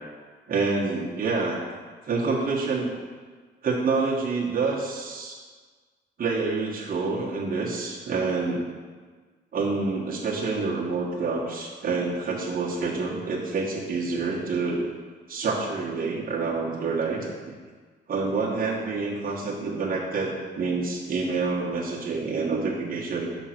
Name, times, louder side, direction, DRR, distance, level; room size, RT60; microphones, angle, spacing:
voice 1, 0.5-1.6 2.1-2.9 3.6-5.4 6.2-8.6 9.5-14.9 15.3-17.5 18.1-23.3, right 4 dB, 45° right, -4 dB, 1.4 m, -27 dB
6.2 x 3.8 x 5.9 m, 1.5 s
cardioid pair, 90°, 20 cm